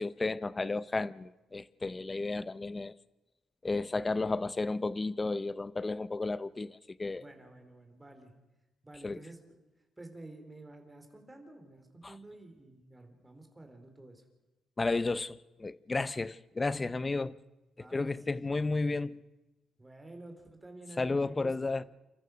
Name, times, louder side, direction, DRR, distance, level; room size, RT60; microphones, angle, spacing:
voice 1, 0.0-2.9 3.6-7.2 9.0-9.2 12.0-12.1 14.8-17.4 17.8-19.2 21.0-21.8, left 3 dB, 25° left, 0.7 m, -33 dB
voice 2, 7.2-8.3 8.8-9.4 10.0-14.2 17.8-18.4 19.8-21.7, right 2 dB, 15° right, 4.5 m, -50 dB
30.0 x 14.0 x 6.4 m
cardioid pair, 90°, 0 cm